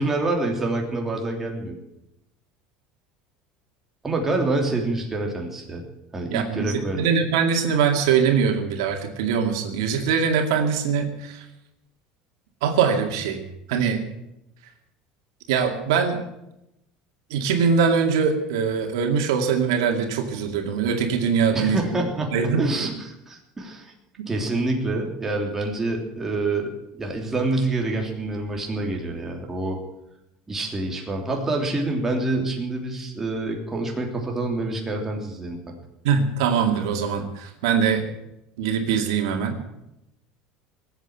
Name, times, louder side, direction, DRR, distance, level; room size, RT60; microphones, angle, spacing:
voice 1, 0.0-1.8 4.0-5.8 6.1-7.1 21.5-23.9 24.3-26.7 27.0-29.8 30.5-35.8, right 2 dB, 15° right, 1 dB, 3.1 m, -27 dB
voice 2, 6.3-11.4 12.6-13.4 13.7-14.0 15.5-16.2 17.3-22.0 22.3-22.7 36.0-38.0 38.6-39.7, right 6 dB, 90° right, 4 dB, 2.3 m, -22 dB
19.0 x 8.2 x 8.0 m, 0.86 s
supercardioid pair, 130°, 2 cm